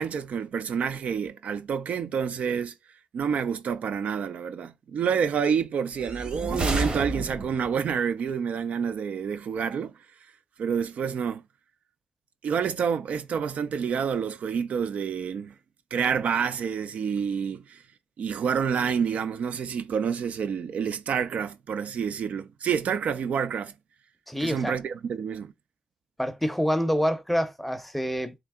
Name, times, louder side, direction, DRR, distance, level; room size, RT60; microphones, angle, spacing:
voice 1, 0.0-2.7 3.1-9.9 10.6-11.4 12.4-15.5 15.9-17.8 18.2-23.7 24.4-25.5, right 7 dB, 85° right, 0.4 m, -28 dB
sound 1, 6.0-7.8, right 2 dB, 45° right, 1.0 m, -30 dB
voice 2, 24.3-24.7 26.2-28.3, equal, 5° left, 0.5 m, -26 dB
3.4 x 2.7 x 3.5 m
wide cardioid pair, 120°, 2 cm